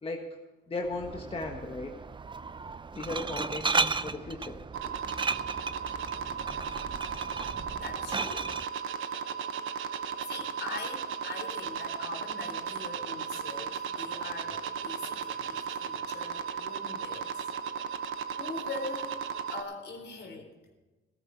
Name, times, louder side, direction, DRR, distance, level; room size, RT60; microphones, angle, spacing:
voice 1, 0.7-1.9 2.9-4.6 5.4-5.5, left 2 dB, 30° left, 2 dB, 1.6 m, -36 dB
Glass, 0.8-8.7, right 4 dB, 25° right, 0.6 m, -34 dB
sound 1, 4.7-19.6, right 7 dB, 85° right, 1.1 m, -36 dB
voice 2, 7.8-8.5 9.0-9.2 10.3-17.5 18.4-20.5, left 3 dB, 60° left, 4 dB, 4.1 m, -42 dB
16.0 x 13.5 x 4.7 m, 1.2 s
cardioid pair, 90°, 20 cm